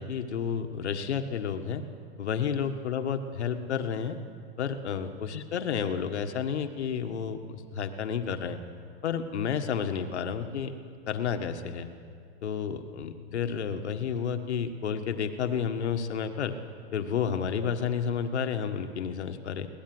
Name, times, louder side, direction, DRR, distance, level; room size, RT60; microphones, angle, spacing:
voice 1, 0.0-1.8 2.2-4.2 4.6-8.6 9.0-10.7 11.1-11.9 12.4-16.5 16.9-19.7, left 7 dB, 85° left, 6 dB, 1.8 m, -31 dB
23.0 x 18.5 x 8.0 m, 2.2 s
hypercardioid pair, 155°, 33 cm